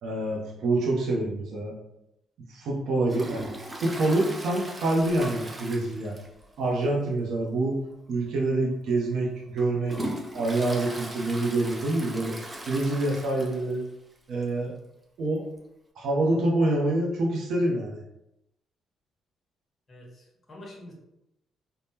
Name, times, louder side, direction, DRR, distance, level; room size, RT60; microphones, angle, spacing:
voice 1, 0.0-1.7 2.5-3.5 3.8-6.1 6.6-7.8 8.1-10.0 10.3-12.4 12.7-13.9 14.3-14.7 15.2-15.4 16.0-18.0, right 2 dB, 75° right, -3 dB, 0.6 m, -26 dB
Toilet flush, 3.1-6.5 6.8-6.9 7.3-7.4 8.3-8.4 8.9-13.8 14.2-14.3 14.4-14.5 15.6-15.7, right 1 dB, 20° right, 0.5 m, -39 dB
voice 2, 19.9-20.9, left 1 dB, 35° left, -3 dB, 1.1 m, -46 dB
3.5 x 2.1 x 2.7 m, 0.85 s
cardioid pair, 90°, 0 cm